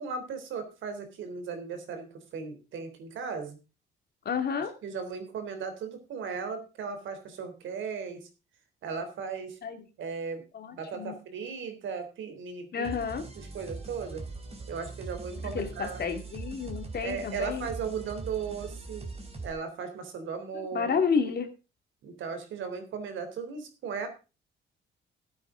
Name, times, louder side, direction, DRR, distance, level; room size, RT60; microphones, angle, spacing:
voice 1, 0.0-3.6 4.8-8.3 8.8-9.6 10.0-10.4 10.7-13.0 13.3-14.2 14.7-16.0 17.0-19.1 19.4-20.9 22.0-24.1, right 5 dB, 75° right, 8 dB, 3.6 m, -36 dB
voice 2, 4.2-4.7 9.6-9.8 10.5-11.2 12.7-13.2 15.4-17.7 20.5-21.5, left 6 dB, 55° left, 6 dB, 2.3 m, -30 dB
sound 1, 12.8-19.5, right 3 dB, 30° right, 3.4 m, -41 dB
14.5 x 8.9 x 3.8 m, 0.31 s
cardioid pair, 90°, 20 cm